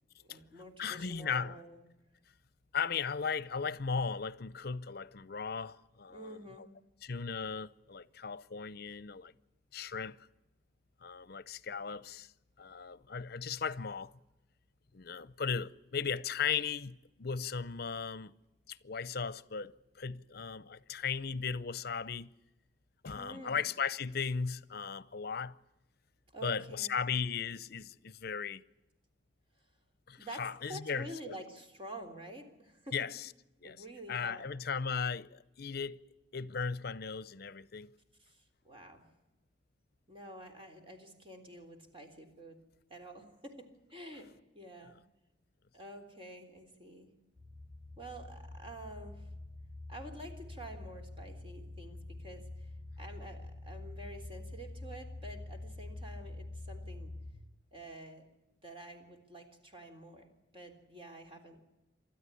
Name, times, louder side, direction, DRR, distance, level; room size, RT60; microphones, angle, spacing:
voice 1, 0.2-1.8 6.1-6.7 23.1-23.6 26.3-27.0 30.2-30.4 30.7-33.0 33.6-34.5 38.2-39.0 40.1-42.6 42.9-45.0 45.7-47.1 48.0-49.3 49.9-57.1 57.7-58.3 58.6-60.3 60.5-61.6, right 1 dB, 30° right, 3.6 m, -49 dB
voice 2, 0.8-1.6 2.7-6.7 7.0-9.3 9.7-10.2 11.0-12.3 12.6-14.1 14.9-18.3 18.7-22.3 23.0-25.6 26.4-28.6 30.1-31.1 32.9-33.3 33.6-33.8 34.1-36.0 36.3-37.9, left 6 dB, 60° left, 0.7 m, -37 dB
sound 1, 47.4-57.3, left 2 dB, 45° right, 5.2 m, -46 dB
29.0 x 13.0 x 9.9 m
head